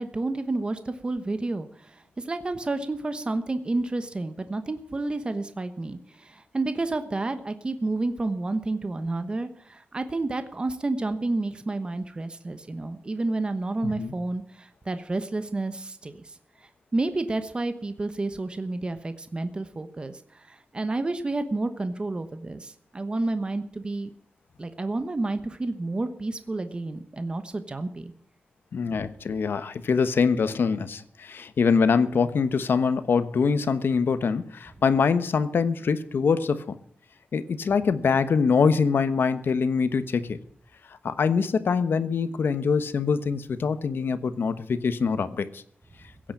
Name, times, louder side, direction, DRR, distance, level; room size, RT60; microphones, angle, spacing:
voice 1, 0.0-16.3 16.9-24.1 24.6-28.1, right 2 dB, 25° right, 9 dB, 1.1 m, -30 dB
voice 2, 28.7-36.8 37.3-40.4 41.0-45.6, left 5 dB, 80° left, 12 dB, 1.1 m, -24 dB
16.5 x 8.7 x 8.7 m, 0.63 s
wide cardioid pair, 170°, 4 cm